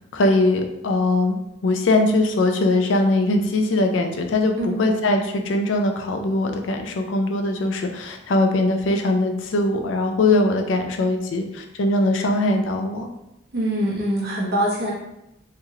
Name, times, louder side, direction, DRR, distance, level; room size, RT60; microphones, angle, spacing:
voice 1, 0.1-1.4 1.6-13.1, left 2 dB, 75° left, 4 dB, 0.4 m, -21 dB
voice 2, 4.6-4.9 13.5-14.9, right 1 dB, 55° right, -4 dB, 0.9 m, -24 dB
3.1 x 2.8 x 2.3 m, 0.88 s
head